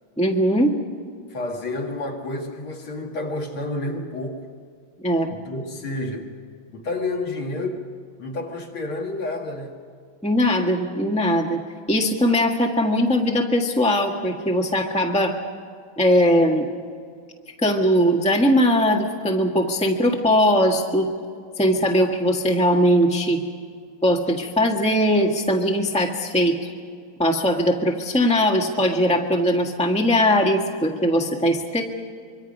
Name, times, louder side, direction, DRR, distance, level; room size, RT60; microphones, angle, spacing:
voice 1, 0.2-0.7 5.0-5.3 10.2-11.6 11.9-15.4 16.0-16.7 17.6-21.1 21.6-23.4 24.0-26.6 27.2-31.8, equal, 5° left, 2 dB, 1.2 m, -20 dB
voice 2, 1.3-4.4 5.3-6.4 6.7-7.9 8.2-9.8, left 2 dB, 75° left, 2 dB, 2.8 m, -30 dB
25.0 x 23.5 x 5.3 m, 2.1 s
omnidirectional pair, 2.3 m